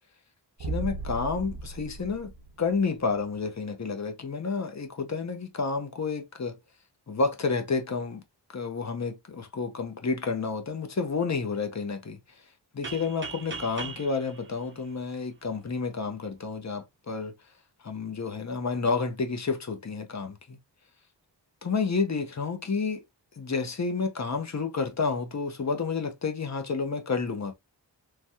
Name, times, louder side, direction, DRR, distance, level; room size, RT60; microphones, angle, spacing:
voice 1, 0.6-2.3 2.6-6.6 7.1-8.2 8.5-12.2 12.7-17.3 17.8-20.6 21.6-23.0 23.4-27.5, left 4 dB, 40° left, 0.7 m, -30 dB
sound 1, 0.6-3.2, right 3 dB, 65° right, 0.8 m, -36 dB
sound 2, 12.8-15.6, right 4 dB, 25° right, 0.6 m, -41 dB
3.2 x 2.2 x 2.7 m
wide cardioid pair, 100°, 43 cm